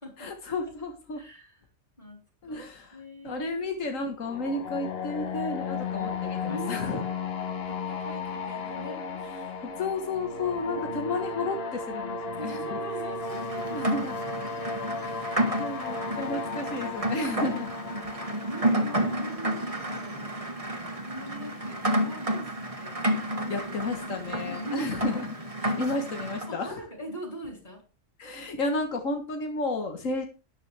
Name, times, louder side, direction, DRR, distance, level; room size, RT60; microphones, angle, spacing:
voice 1, 0.2-1.2 2.4-3.0 3.2-7.0 9.4-12.8 13.7-14.2 15.0-17.7 23.5-25.3 25.6-26.8 28.2-30.3, left 2 dB, 90° left, 4 dB, 1.8 m, -32 dB
voice 2, 1.1-1.6 2.0-2.7 2.9-3.5 3.8-3.9 5.2-5.3 6.5-7.2 7.7-9.0 10.9-11.2 12.4-13.9 17.9-23.0 23.4-23.9 24.4-25.3 26.5-27.8, equal, 35° left, 2 dB, 4.5 m, -43 dB
sound 1, 4.2-20.0, left 4 dB, 55° left, 1.4 m, -35 dB
Rain, 13.2-26.5, right 1 dB, 30° right, 1.6 m, -31 dB
12.5 x 9.8 x 3.4 m, 0.33 s
omnidirectional pair, 1.3 m